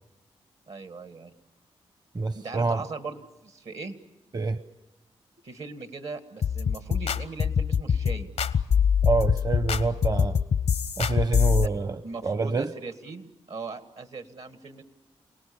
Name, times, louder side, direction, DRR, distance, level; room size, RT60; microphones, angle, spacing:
voice 1, 0.7-1.3 2.3-4.0 5.4-8.3 11.5-11.6 12.0-14.8, right 4 dB, 70° right, 1.9 m, -39 dB
voice 2, 2.1-2.8 4.3-4.6 9.0-10.4 11.0-12.7, right 3 dB, 35° right, 0.9 m, -27 dB
sound 1, 6.4-11.7, left 7 dB, 75° left, 0.8 m, -24 dB
28.5 x 18.5 x 7.1 m
supercardioid pair, 40°, 11 cm